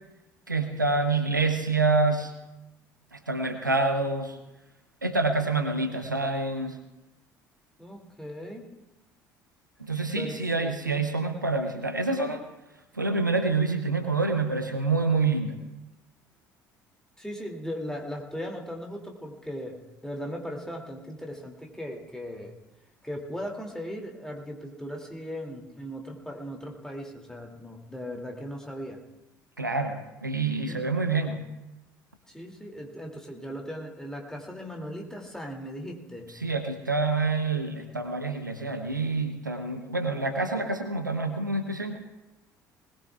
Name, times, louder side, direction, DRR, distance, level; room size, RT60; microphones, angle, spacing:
voice 1, 0.5-2.3 3.1-4.4 5.0-6.8 9.8-12.4 12.9-15.6 29.6-31.4 36.4-42.0, right 3 dB, 90° right, 8 dB, 0.8 m, -27 dB
voice 2, 7.8-8.7 10.1-11.0 17.2-22.5 23.0-29.0 30.5-30.9 32.3-36.3, equal, 5° left, 1 dB, 2.7 m, -38 dB
20.5 x 19.0 x 2.4 m, 0.97 s
figure-of-eight pair, 55°, 10 cm